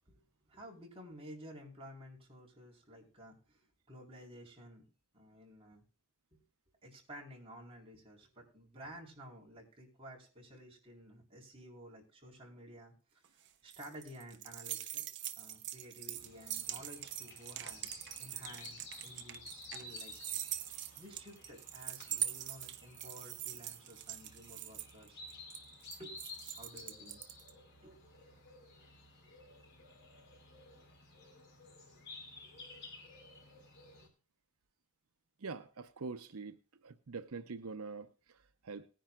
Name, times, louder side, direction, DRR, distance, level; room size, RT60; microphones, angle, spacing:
voice 1, 0.1-4.8 5.1-5.8 6.3-6.4 6.8-15.0 15.4-17.9 18.2-20.1 21.0-25.2 26.0-26.2 26.5-27.2 27.8-28.0, equal, 25° right, 4.3 m, -53 dB
sound 1, 13.2-27.5, right 12 dB, 55° right, 0.9 m, -43 dB
sound 2, 16.1-34.1, left 3 dB, 55° left, 4.1 m, -54 dB
voice 2, 35.4-36.6 36.8-38.9, right 4 dB, 85° right, 0.7 m, -44 dB
19.5 x 10.0 x 2.4 m
head